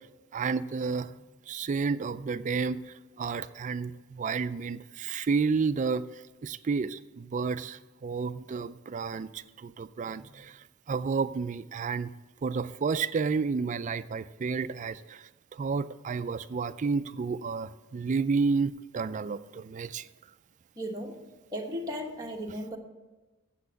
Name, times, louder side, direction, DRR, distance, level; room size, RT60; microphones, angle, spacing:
voice 1, 0.3-1.1 1.5-2.8 3.2-6.0 6.4-10.6 10.9-12.1 12.4-15.3 15.6-20.1, right 5 dB, 35° right, 13 dB, 0.3 m, -31 dB
voice 2, 20.8-21.2 21.5-22.8, equal, 15° right, 1 dB, 1.1 m, -36 dB
8.4 x 7.6 x 6.9 m, 1.2 s
head